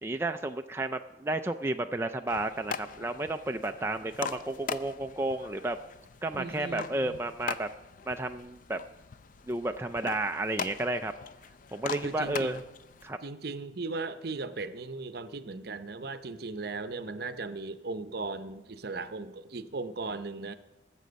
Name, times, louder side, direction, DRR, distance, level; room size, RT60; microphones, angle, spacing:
voice 1, 0.0-5.8 6.2-7.7 8.1-8.8 9.5-11.1 11.7-12.6 13.0-13.2, right 2 dB, 15° right, 6 dB, 0.3 m, -32 dB
sound 1, 2.3-13.1, left 6 dB, 45° left, 0.4 m, -41 dB
voice 2, 6.3-7.2 12.0-12.6 13.2-20.5, right 3 dB, 60° right, 11 dB, 0.7 m, -37 dB
20.0 x 7.4 x 5.2 m, 1.0 s
head